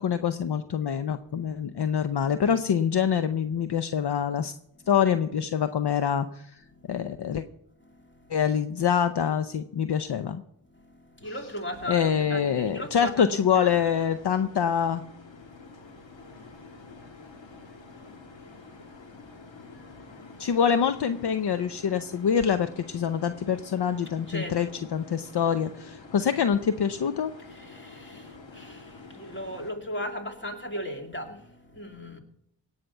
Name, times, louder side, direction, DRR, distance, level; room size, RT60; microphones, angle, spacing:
voice 1, 0.0-4.5 4.9-6.6 6.9-7.4 8.3-10.4 11.9-15.0 20.4-27.3, left 7 dB, 60° left, 10 dB, 0.7 m, -25 dB
voice 2, 6.6-7.1 7.8-8.5 10.6-13.7 15.3-20.6 22.3-22.4 23.8-25.0 26.0-26.3 27.4-32.2, equal, 25° left, 3 dB, 2.4 m, -40 dB
sound 1, 11.7-29.7, left 3 dB, 80° left, 2.0 m, -48 dB
17.5 x 5.8 x 8.1 m, 0.75 s
cardioid pair, 55°, 45 cm